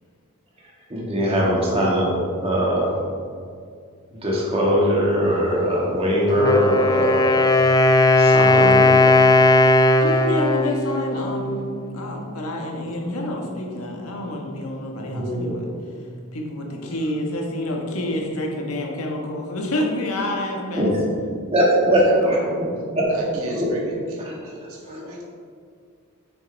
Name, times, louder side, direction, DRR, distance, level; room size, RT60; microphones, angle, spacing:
voice 1, 0.9-3.0 4.2-7.2 8.2-8.8 14.9-15.5 20.8-20.9 21.5-22.7 23.0-23.1 23.5-23.7 24.2-24.3 24.9-25.0, equal, 25° right, -4 dB, 1.9 m, -21 dB
Wind instrument woodwind instrument, 6.3-12.1, left 2 dB, 20° left, 0.3 m, -17 dB
voice 2, 10.0-11.6 11.9-15.7 16.3-20.9, left 1 dB, 90° left, 0 dB, 1.4 m, -28 dB
voice 3, 21.8-22.7 23.1-25.2, right 1 dB, 75° right, -3 dB, 1.8 m, -35 dB
8.6 x 6.8 x 3.4 m, 2.2 s
head